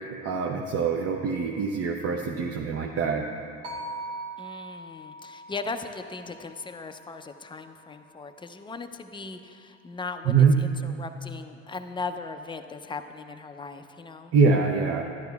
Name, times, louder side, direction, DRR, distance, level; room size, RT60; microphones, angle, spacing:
voice 1, 0.0-3.2 10.3-10.6 14.3-15.0, right 5 dB, 40° right, 1 dB, 0.7 m, -24 dB
sound 1, 3.6-7.9, right 2 dB, 80° right, 1.1 m, -41 dB
voice 2, 4.4-14.3, left 4 dB, 15° left, 8 dB, 0.5 m, -38 dB
11.5 x 11.0 x 2.3 m, 2.5 s
hypercardioid pair, 70°, 35 cm